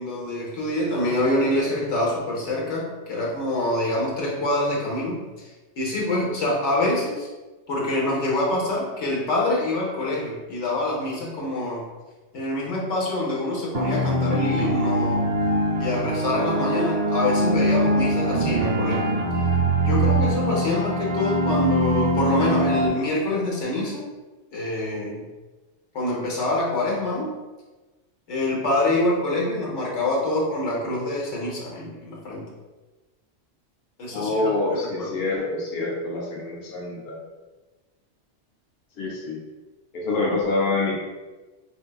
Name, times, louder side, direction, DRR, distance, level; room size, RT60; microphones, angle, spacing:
voice 1, 0.0-7.3 7.7-11.8 12.3-15.2 15.8-19.1 19.8-24.1 24.5-25.2 25.9-27.3 28.3-32.5 34.0-35.1, left 1 dB, 85° left, -4 dB, 1.2 m, -26 dB
sound 1, 13.7-22.9, right 1 dB, 90° right, 0.9 m, -23 dB
voice 2, 34.1-37.2 39.0-39.4 39.9-41.0, left 2 dB, 65° left, -3 dB, 0.8 m, -26 dB
3.4 x 2.6 x 2.3 m, 1.2 s
omnidirectional pair, 1.2 m